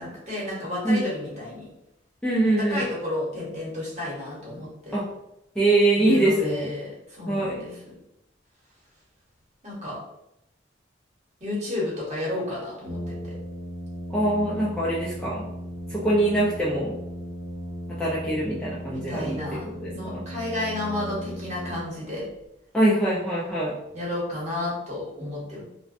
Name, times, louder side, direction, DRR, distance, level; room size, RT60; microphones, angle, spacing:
voice 1, 0.0-1.7 2.7-5.0 6.0-7.7 9.6-10.0 11.4-13.3 18.9-19.6 19.9-22.2 23.9-25.6, left 1 dB, 40° right, -6 dB, 0.9 m, -32 dB
voice 2, 2.2-2.8 4.9-5.0 5.6-6.7 7.3-7.6 14.1-15.4 15.9-16.9 18.0-20.2 22.7-23.7, right 1 dB, 5° left, -7 dB, 0.3 m, -23 dB
Brass instrument, 12.8-22.3, equal, 70° right, 0.6 m, -36 dB
2.4 x 2.1 x 2.5 m, 0.83 s
head